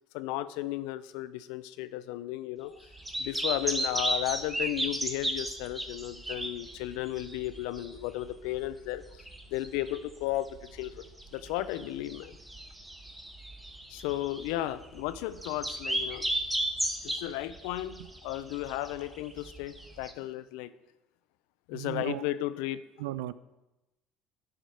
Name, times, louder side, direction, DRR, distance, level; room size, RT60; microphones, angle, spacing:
voice 1, 0.1-2.7 3.2-9.0 9.5-11.0 11.3-12.4 13.9-16.3 17.0-20.7 21.7-22.8, left 15 dB, 80° left, 14 dB, 0.4 m, -34 dB
sound 1, 2.8-20.1, right 1 dB, 10° right, 1.1 m, -35 dB
voice 2, 21.7-22.2 23.0-23.3, right 15 dB, 85° right, 16 dB, 0.3 m, -35 dB
10.0 x 5.0 x 4.6 m, 0.99 s
supercardioid pair, 85°, 0 cm